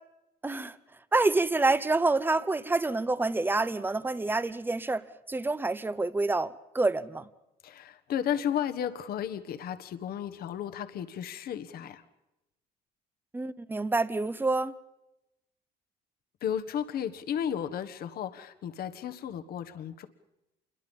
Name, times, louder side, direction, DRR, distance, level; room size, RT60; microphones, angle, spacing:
voice 1, 0.4-0.8 1.1-7.3 13.3-14.7, right 3 dB, 10° right, 0.9 m, -27 dB
voice 2, 7.6-12.0 16.4-20.1, left 9 dB, 65° left, 1.6 m, -33 dB
27.5 x 22.0 x 5.5 m
cardioid pair, 110°, 17 cm